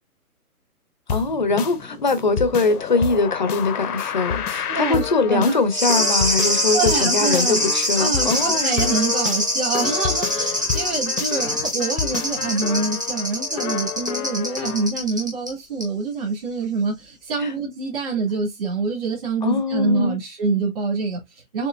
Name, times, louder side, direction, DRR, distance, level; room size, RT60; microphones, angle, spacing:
sound 1, 1.1-14.9, left 7 dB, 80° left, 0.8 m, -30 dB
voice 1, 1.1-8.7 17.4-17.5 19.4-20.2, left 3 dB, 30° left, 0.6 m, -22 dB
voice 2, 4.7-5.6 6.7-7.6 8.0-21.7, right 4 dB, 40° right, 2.2 m, -26 dB
sound 2, 5.7-15.5 15.8-15.9, equal, 15° right, 0.7 m, -23 dB
6.6 x 2.9 x 2.4 m
hypercardioid pair, 170°, 45 cm